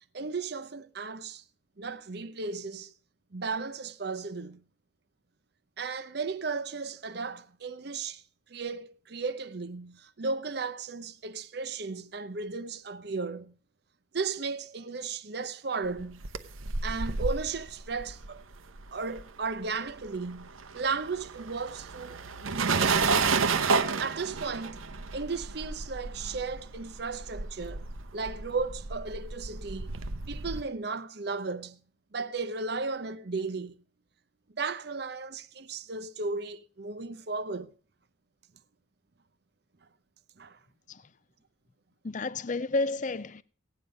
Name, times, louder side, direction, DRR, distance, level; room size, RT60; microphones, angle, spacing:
voice 1, 0.1-1.4 1.8-2.9 3.3-4.6 5.8-8.2 8.5-13.6 14.1-16.3 16.8-18.4 18.9-23.1 24.0-24.8 25.1-27.9 28.1-29.9 30.3-31.8 32.1-33.8 34.5-37.7 40.4-40.6, right 4 dB, 55° right, 0.7 m, -35 dB
sound 1, 16.0-19.6 19.9-30.6, right 4 dB, 85° right, 0.9 m, -31 dB
voice 2, 42.0-43.4, left 3 dB, 40° left, 0.5 m, -31 dB
16.5 x 9.3 x 5.3 m
head